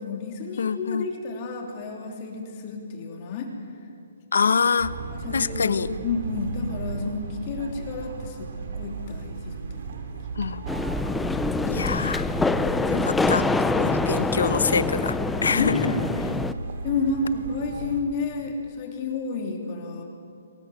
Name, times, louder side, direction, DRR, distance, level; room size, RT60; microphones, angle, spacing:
voice 1, 0.0-3.5 5.1-8.5 8.7-9.6 12.9-13.1 15.5-16.0 16.8-20.0, left 4 dB, 30° left, 1 dB, 3.2 m, -30 dB
voice 2, 0.6-1.1 4.3-4.9 5.3-5.9 10.4-10.9 11.7-12.2 13.0-15.8, left 5 dB, 75° left, 13 dB, 1.2 m, -25 dB
sound 1, 4.8-18.0, right 4 dB, 50° right, 3.4 m, -35 dB
sound 2, 10.7-16.5, left 3 dB, 5° left, 0.5 m, -25 dB
26.0 x 20.0 x 8.0 m, 2.3 s
hypercardioid pair, 165°, 0 cm